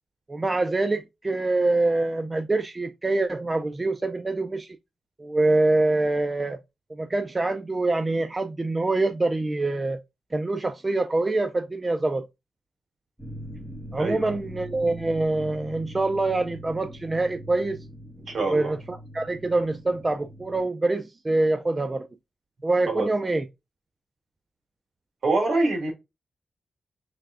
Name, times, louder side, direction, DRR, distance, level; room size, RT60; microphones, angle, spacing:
voice 1, 0.3-4.8 5.2-6.6 6.9-10.0 10.3-12.3 13.9-17.8 18.4-22.1 22.6-23.4, right 2 dB, 25° right, 0.3 m, -25 dB
sound 1, 13.2-20.6, equal, ahead, 1.5 m, -42 dB
voice 2, 14.0-14.3 18.3-18.7 22.9-23.1 25.2-25.9, right 2 dB, 70° right, 1.8 m, -25 dB
3.4 x 3.3 x 3.6 m
wide cardioid pair, 140°, 0 cm